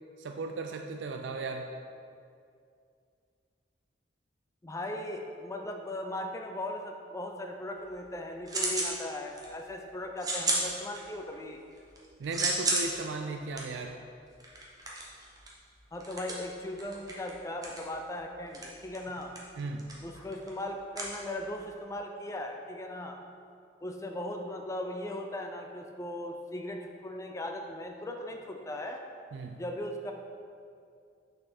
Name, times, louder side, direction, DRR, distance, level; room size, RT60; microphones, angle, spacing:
voice 1, 0.2-1.7 12.2-14.0 19.6-19.9 29.3-29.6, right 3 dB, 90° right, 4 dB, 0.4 m, -36 dB
voice 2, 4.6-11.6 15.9-19.4 20.0-23.2 23.8-29.0 29.6-30.1, left 1 dB, 15° left, 3 dB, 0.4 m, -38 dB
sound 1, 7.8-9.0 9.3-9.7 10.2-11.3 11.7-21.8, right 2 dB, 20° right, 0.9 m, -34 dB
6.4 x 4.3 x 4.3 m, 2.4 s
head